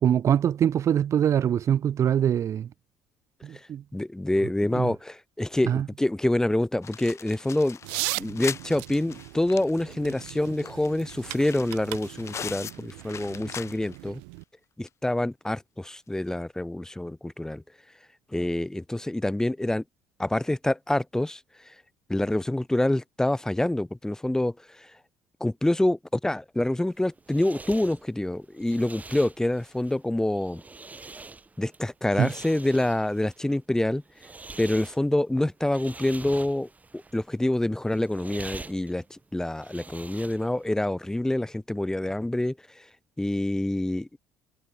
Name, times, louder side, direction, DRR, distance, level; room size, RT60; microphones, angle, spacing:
voice 1, 0.0-2.7 3.4-3.8 4.7-4.9 5.7-5.9 32.2-32.3, right 9 dB, 50° right, 0.6 m, -23 dB
voice 2, 3.9-7.8 8.2-14.2 14.8-17.6 18.3-19.8 20.2-21.4 22.1-24.9 25.4-30.6 31.6-34.0 34.6-42.5 43.2-44.2, left 1 dB, 10° left, 1.3 m, -26 dB
sound 1, 6.8-14.1 14.4-14.5 14.9-15.0 16.2-16.3, left 7 dB, 45° left, 3.1 m, -41 dB
sound 2, 7.8-14.4, right 40 dB or more, 80° right, 2.0 m, -38 dB
sound 3, 26.8-40.7, right 3 dB, 20° right, 3.8 m, -45 dB
hypercardioid pair, 65°, 7 cm